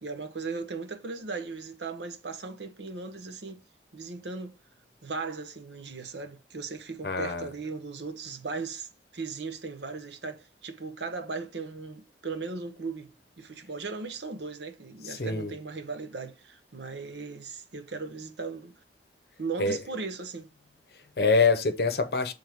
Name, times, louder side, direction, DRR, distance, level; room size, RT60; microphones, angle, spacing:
voice 1, 0.0-3.6 3.9-4.6 5.0-13.1 13.4-18.8 19.4-20.5, right 4 dB, 70° right, 0.8 m, -37 dB
voice 2, 7.0-7.5 15.0-15.5 19.6-19.8 20.9-22.3, left 4 dB, 60° left, 0.7 m, -25 dB
7.6 x 3.5 x 3.5 m
head